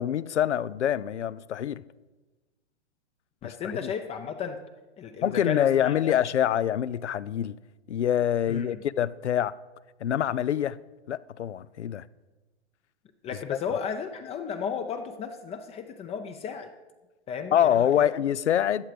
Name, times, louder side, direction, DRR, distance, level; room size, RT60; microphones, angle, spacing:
voice 1, 0.0-1.8 3.4-3.9 5.2-7.6 7.9-9.5 10.0-10.8 11.1-12.1 13.5-13.6 17.5-18.8, left 10 dB, 85° left, 0.5 m, -25 dB
voice 2, 3.4-4.6 5.0-6.1 8.5-8.8 13.2-16.7 17.3-18.1, left 7 dB, 20° left, 0.6 m, -34 dB
14.0 x 8.6 x 5.1 m
hypercardioid pair, 120°, 34 cm